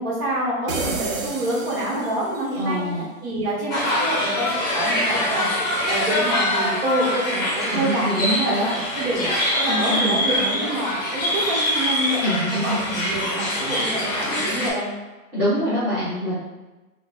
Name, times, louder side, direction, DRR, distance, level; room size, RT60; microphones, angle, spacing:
voice 1, 0.0-2.8 3.2-5.5 5.8-8.1 8.4-8.5 8.9-9.3 9.6-12.2 12.6-14.9, right 1 dB, 40° right, -5 dB, 1.4 m, -27 dB
sound 1, 0.7-2.5, right 4 dB, 60° right, 0.8 m, -30 dB
voice 2, 2.6-3.0 7.7-8.7 9.7-10.2 12.2-12.8 15.3-16.3, equal, 10° right, -15 dB, 0.6 m, -24 dB
sound 2, 3.7-14.7, left 1 dB, 30° left, 0.8 m, -24 dB
3.7 x 2.4 x 3.8 m, 1.1 s
hypercardioid pair, 160°, 44 cm